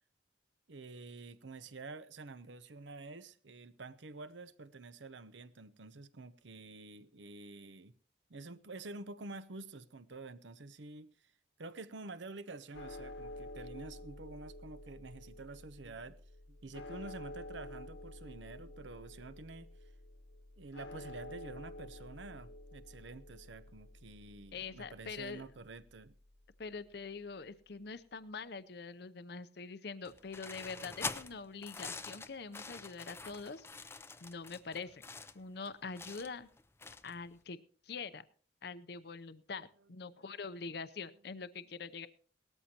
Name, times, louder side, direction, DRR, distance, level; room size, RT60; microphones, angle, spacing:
voice 1, 0.7-7.9 8.3-11.1 11.6-16.2 16.5-19.7 20.6-26.2 31.3-31.4 40.2-40.3, right 3 dB, 75° right, 0.8 m, -49 dB
sound 1, 12.7-27.0, left 1 dB, 80° left, 1.5 m, -50 dB
voice 2, 24.5-25.4 26.6-35.0 35.3-36.5 37.0-37.6 37.8-38.2 38.6-42.1, left 4 dB, 55° left, 0.6 m, -44 dB
sound 2, 30.0-37.3, left 4 dB, 15° left, 0.5 m, -45 dB
18.5 x 13.5 x 2.9 m
head